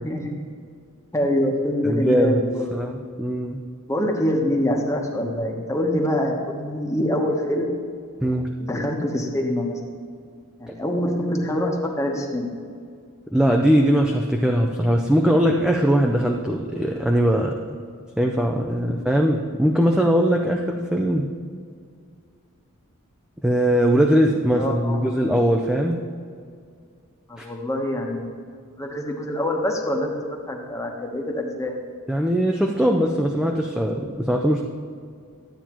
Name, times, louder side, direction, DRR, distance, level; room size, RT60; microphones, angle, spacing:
voice 1, 0.0-0.4 1.1-2.7 3.9-7.8 8.6-9.8 10.6-12.5 24.6-25.0 27.3-28.3 28.8-30.1 30.5-31.8, left 1 dB, 15° left, 1 dB, 1.0 m, -25 dB
voice 2, 1.8-3.6 8.2-8.5 10.7-10.8 13.3-17.6 18.2-21.3 23.4-26.0 27.4-27.5 32.1-34.6, equal, 5° right, 1 dB, 0.4 m, -20 dB
12.0 x 8.5 x 3.0 m, 2.2 s
head